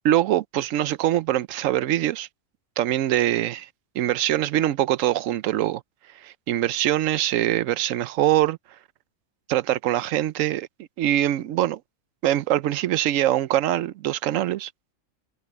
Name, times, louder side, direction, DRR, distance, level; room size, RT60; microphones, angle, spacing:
voice 1, 0.0-2.3 2.8-3.7 3.9-5.8 6.1-8.6 9.5-10.7 11.0-11.8 12.2-14.7, right 13 dB, 75° right, 1.0 m, -23 dB
omnidirectional pair, 1.4 m